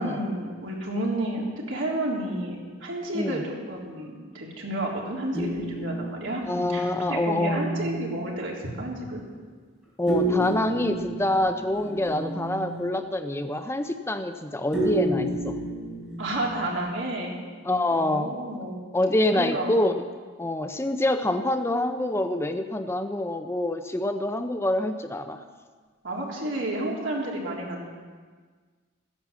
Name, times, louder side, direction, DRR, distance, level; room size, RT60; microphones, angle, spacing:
voice 1, 0.0-6.4 6.7-9.2 16.2-17.3 17.9-18.8 19.4-19.8 26.0-27.9, right 1 dB, 75° right, -3 dB, 3.5 m, -31 dB
voice 2, 3.1-3.5 6.5-7.6 10.0-15.6 17.6-18.3 18.9-20.1 20.4-25.4, left 1 dB, 15° left, 7 dB, 0.6 m, -26 dB
sound 1, 5.3-8.5 10.1-13.0 14.7-16.9, right 1 dB, ahead, 4.3 m, -31 dB
15.0 x 10.5 x 7.4 m, 1.5 s
head